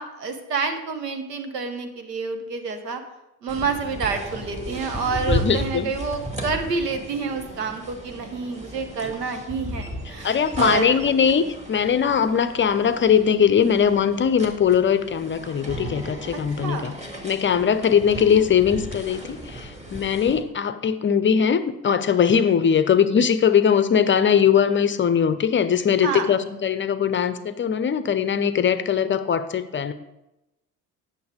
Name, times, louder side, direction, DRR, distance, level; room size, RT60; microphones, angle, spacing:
voice 1, 0.0-3.0 3.4-11.0 16.6-16.9 26.0-26.3, right 5 dB, 85° right, 7 dB, 1.0 m, -28 dB
sound 1, 3.5-20.4, equal, 15° right, 2.2 m, -35 dB
voice 2, 5.3-5.9 10.2-16.9 17.2-29.9, left 7 dB, 25° left, 12 dB, 0.6 m, -20 dB
9.4 x 6.4 x 5.1 m, 0.92 s
hypercardioid pair, 60°, 47 cm